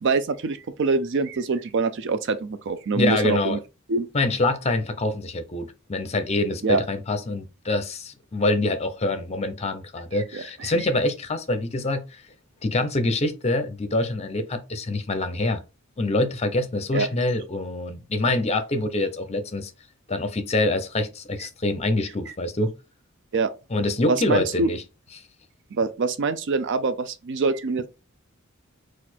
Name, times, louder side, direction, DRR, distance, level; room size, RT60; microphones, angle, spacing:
voice 1, 0.0-3.6 3.9-4.1 6.6-6.8 10.1-10.7 16.9-17.1 23.3-23.5 24.1-24.7 25.7-27.9, right 4 dB, 60° right, 0.4 m, -25 dB
voice 2, 2.9-3.6 4.1-12.2 12.6-15.6 16.0-19.7 20.1-22.7 23.7-24.8, left 2 dB, 30° left, 0.7 m, -25 dB
4.1 x 2.5 x 4.3 m
head